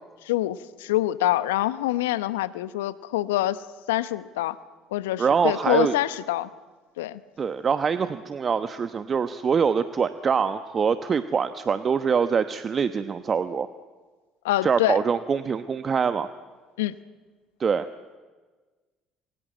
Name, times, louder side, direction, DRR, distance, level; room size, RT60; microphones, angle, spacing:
voice 1, 0.2-4.6 4.9-6.5 7.0-7.2 14.4-15.0 16.8-17.0, left 15 dB, 80° left, 15 dB, 0.9 m, -26 dB
voice 2, 5.2-6.0 7.4-13.7 14.6-16.3 17.6-17.9, right 6 dB, 40° right, 11 dB, 1.1 m, -24 dB
28.0 x 23.0 x 9.1 m, 1.4 s
hypercardioid pair, 55°, 0 cm